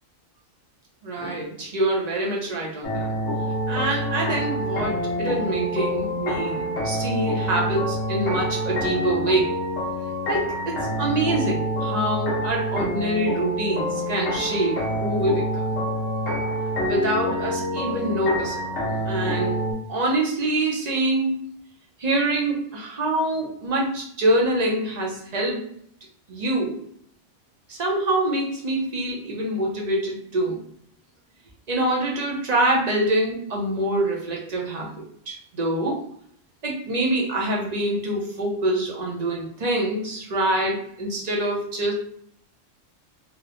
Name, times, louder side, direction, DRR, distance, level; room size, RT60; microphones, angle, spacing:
voice 1, 1.0-3.1 3.7-9.5 10.3-15.7 16.8-18.7 19.1-19.6 19.9-21.3 22.0-25.7 26.3-26.8 27.7-30.6 31.7-36.0 36.6-41.9, right 1 dB, 45° right, -2 dB, 0.6 m, -25 dB
sound 1, 2.8-19.7, equal, 70° left, 0.9 m, -27 dB
3.0 x 2.1 x 2.4 m, 0.65 s
omnidirectional pair, 1.3 m